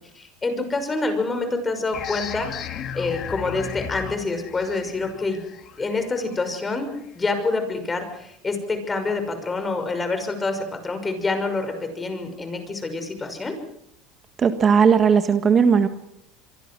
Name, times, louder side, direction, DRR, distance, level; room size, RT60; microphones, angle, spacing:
voice 1, 0.1-2.6 2.9-5.4 5.8-13.6, left 3 dB, 20° left, 7 dB, 5.9 m, -27 dB
sound 1, 1.9-7.3, left 8 dB, 40° left, 2.6 m, -35 dB
voice 2, 14.4-15.9, right 6 dB, 30° right, 9 dB, 1.6 m, -17 dB
26.5 x 23.5 x 6.2 m, 0.75 s
supercardioid pair, 120°, 0 cm